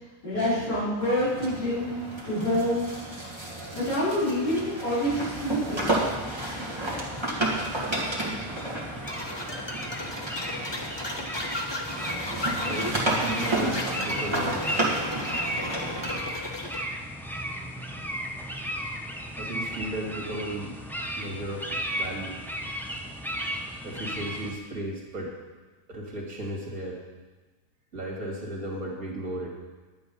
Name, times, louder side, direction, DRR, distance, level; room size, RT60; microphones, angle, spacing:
voice 1, 0.2-2.0 2.2-2.9 3.7-5.9 12.6-12.9, equal, 75° left, -9 dB, 5.0 m, -27 dB
sound 1, 1.0-11.6 11.9-16.2, right 1 dB, 15° right, 1.9 m, -32 dB
sound 2, 5.1-24.6, equal, ahead, 0.4 m, -36 dB
voice 2, 8.7-9.0 12.7-14.6 19.4-20.7 21.2-22.4 23.8-25.3 25.9-27.0 27.9-29.5, right 1 dB, 55° right, -1 dB, 2.8 m, -35 dB
sound 3, 9.1-16.8, left 1 dB, 20° left, 0.9 m, -35 dB
10.5 x 9.2 x 5.4 m, 1.3 s
omnidirectional pair, 1.9 m